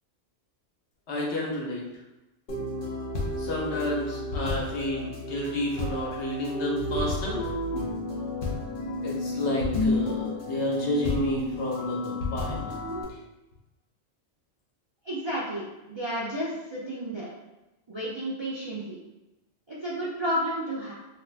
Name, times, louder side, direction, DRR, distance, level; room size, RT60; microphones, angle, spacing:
voice 1, 1.1-1.9 3.2-7.4 9.0-12.7, left 1 dB, 85° left, -3 dB, 1.1 m, -30 dB
sound 1, 2.5-13.0, left 2 dB, 60° left, 0.8 m, -31 dB
voice 2, 15.0-17.3 17.9-19.0 19.7-20.9, equal, 45° right, -8 dB, 0.3 m, -31 dB
2.5 x 2.4 x 3.2 m, 1.0 s
omnidirectional pair, 1.1 m